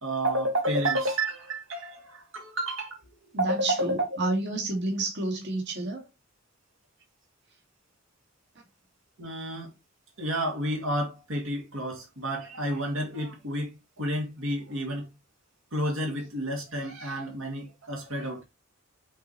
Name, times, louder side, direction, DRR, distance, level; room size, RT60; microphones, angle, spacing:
voice 1, 0.0-3.0 3.4-4.3 9.2-9.7 10.2-15.1 15.7-18.5, right 1 dB, 75° right, 2.4 m, -30 dB
voice 2, 3.3-6.1, right 2 dB, 55° right, 2.2 m, -30 dB
7.9 x 4.3 x 3.1 m
head